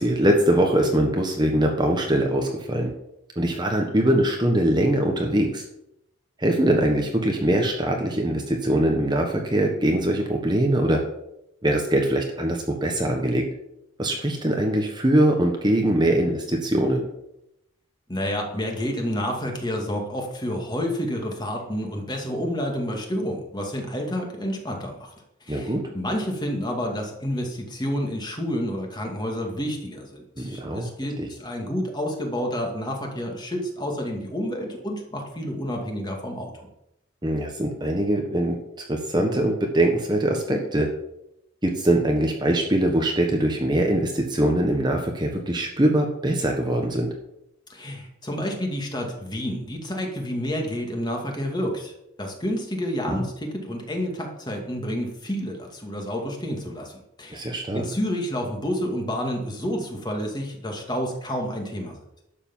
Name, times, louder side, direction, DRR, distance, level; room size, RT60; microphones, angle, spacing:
voice 1, 0.0-2.9 3.4-5.6 6.4-11.0 11.6-13.4 14.0-17.1 25.5-25.8 30.4-30.9 31.2-31.3 37.2-38.6 38.9-40.9 41.6-47.1 53.1-53.2 57.3-57.9, right 1 dB, 20° right, 2 dB, 1.3 m, -22 dB
voice 2, 18.1-25.1 25.4-36.7 47.7-51.9 52.2-57.5 57.7-62.0, equal, 20° left, 1 dB, 2.3 m, -29 dB
12.0 x 6.9 x 7.3 m, 0.83 s
head